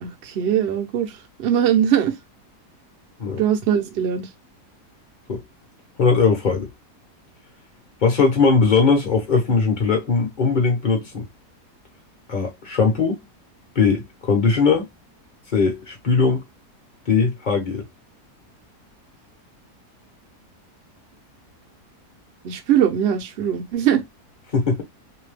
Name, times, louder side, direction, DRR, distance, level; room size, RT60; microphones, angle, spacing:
voice 1, 0.0-1.1 1.4-2.2 3.4-4.3 22.4-24.0, right 9 dB, 60° right, 0.7 m, -21 dB
voice 2, 6.0-6.7 8.0-11.3 12.3-13.2 13.8-14.9 15.5-16.4 17.1-17.8 24.5-24.8, left 4 dB, 40° left, 0.7 m, -19 dB
2.7 x 2.2 x 3.2 m
omnidirectional pair, 1.7 m